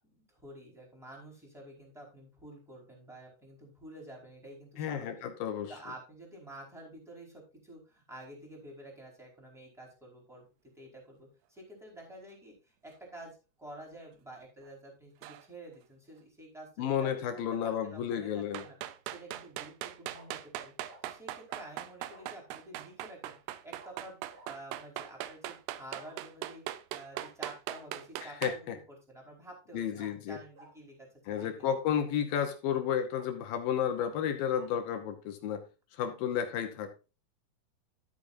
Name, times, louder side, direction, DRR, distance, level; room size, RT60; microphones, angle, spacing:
voice 1, 0.0-5.2 5.7-10.4 10.7-18.8 19.0-20.7 21.0-23.4 23.6-26.6 26.9-31.7, right 1 dB, ahead, -2 dB, 4.3 m, -50 dB
voice 2, 4.8-5.7 16.8-18.6 28.2-28.8 29.7-30.4 31.3-35.6 35.9-36.9, left 9 dB, 70° left, 7 dB, 2.7 m, -32 dB
sound 1, 15.2-15.5 18.5-28.6, right 13 dB, 90° right, 2.8 m, -40 dB
Bark, 18.4-18.8 20.1-20.3 20.9-21.0 21.5-21.7 22.1-22.3 23.8-24.0 24.3-24.5 26.0-26.2 27.1-27.3 27.7-27.8 29.9-30.1 30.5-30.7 31.3-31.9 32.4-32.5 33.1-33.3 33.9-34.1 34.5-34.7, right 2 dB, 35° right, 2.0 m, -55 dB
13.5 x 8.4 x 2.7 m, 0.31 s
omnidirectional pair, 4.6 m